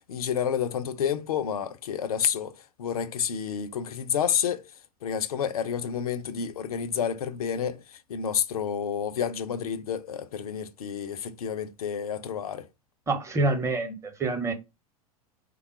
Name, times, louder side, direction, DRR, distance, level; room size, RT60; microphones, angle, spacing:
voice 1, 0.1-2.5 2.8-4.7 5.0-12.7, left 8 dB, 75° left, 0.5 m, -29 dB
voice 2, 13.1-14.5, right 2 dB, 15° right, 0.8 m, -27 dB
3.4 x 2.2 x 4.4 m
hypercardioid pair, 90°, 19 cm